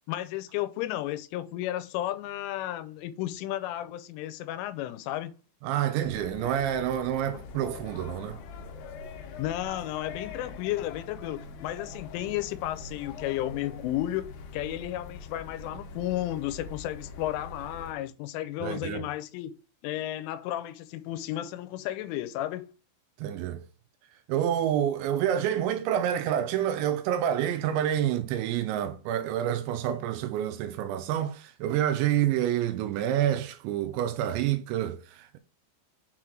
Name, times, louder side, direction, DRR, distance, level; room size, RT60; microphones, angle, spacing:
voice 1, 0.1-5.3 9.4-22.7, left 13 dB, 90° left, 3.1 m, -33 dB
voice 2, 5.6-8.4 18.6-19.0 23.2-23.6 24.3-35.4, right 10 dB, 85° right, 2.7 m, -28 dB
sound 1, 6.0-17.9, left 4 dB, 75° left, 2.7 m, -43 dB
6.9 x 4.5 x 3.8 m
omnidirectional pair, 5.5 m